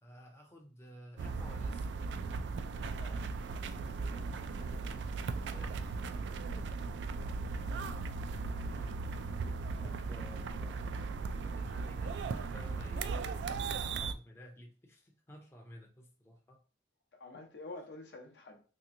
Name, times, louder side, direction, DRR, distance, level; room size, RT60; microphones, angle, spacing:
voice 1, 0.0-2.0 3.7-6.8 8.1-9.0 10.1-11.0 11.4-16.6, equal, 15° left, 0.5 m, -55 dB
sound 1, 1.2-14.1, right 4 dB, 75° right, 0.3 m, -37 dB
voice 2, 17.1-18.6, left 2 dB, 65° left, 0.7 m, -49 dB
3.2 x 2.9 x 2.5 m
head